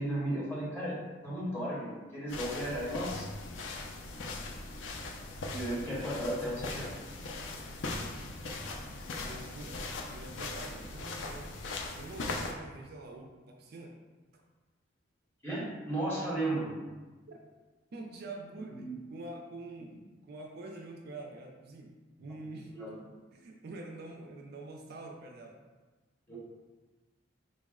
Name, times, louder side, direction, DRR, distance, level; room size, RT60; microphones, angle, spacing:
voice 1, 0.0-3.2 5.5-6.9 15.4-16.7 18.8-18.9 22.7-22.9 26.3-26.4, right 1 dB, 10° left, -8 dB, 1.1 m, -34 dB
sound 1, 2.3-12.5, left 2 dB, 75° left, 0.4 m, -40 dB
voice 2, 9.2-11.5 11.9-14.0 14.3-14.4 16.1-16.2 17.3-17.4 17.9-19.9 20.2-21.9 22.2-25.6, right 2 dB, 55° right, 1 dB, 0.4 m, -46 dB
3.9 x 2.1 x 3.5 m, 1.2 s
head